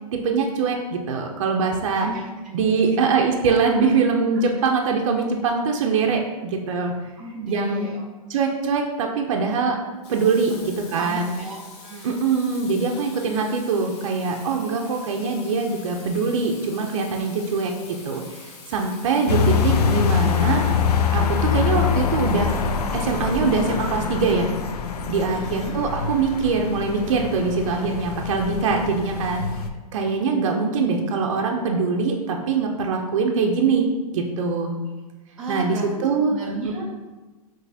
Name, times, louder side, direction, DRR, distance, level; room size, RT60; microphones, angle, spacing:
voice 1, 0.1-2.1 2.5-6.9 7.5-7.9 8.3-9.8 10.1-11.4 12.0-20.6 21.1-22.6 22.9-24.5 25.1-29.5 29.9-33.9 34.1-34.7 35.5-36.4 36.6-36.7, right 4 dB, 50° right, 1 dB, 0.6 m, -23 dB
voice 2, 2.7-3.0 3.8-3.9 4.3-4.4 7.2-8.0 10.5-10.6 10.9-12.2 25.3-25.7 35.4-37.1, right 2 dB, 5° right, -8 dB, 0.4 m, -35 dB
Water tap faucet / Sink (filling or washing), 10.0-24.8, left 4 dB, 45° left, 0.9 m, -45 dB
sound 1, 19.3-29.7, left 6 dB, 80° left, 0.5 m, -24 dB
6.0 x 3.1 x 2.7 m, 1.2 s
hypercardioid pair, 160°, 20 cm